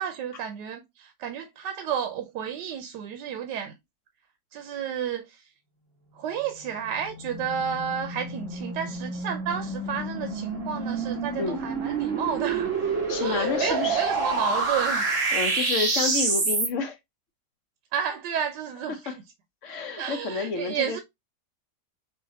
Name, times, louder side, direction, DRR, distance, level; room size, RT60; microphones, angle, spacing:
voice 1, 0.0-3.7 4.5-5.5 6.1-12.7 13.2-15.0 15.9-16.0 17.9-19.2 20.0-21.0, right 8 dB, 90° right, 1.3 m, -31 dB
sound 1, 6.6-16.7, right 3 dB, 50° right, 1.7 m, -28 dB
voice 2, 13.1-14.1 15.3-17.0 18.9-19.1 19.6-21.0, left 4 dB, 60° left, 0.9 m, -30 dB
6.1 x 2.5 x 2.7 m
omnidirectional pair, 1.8 m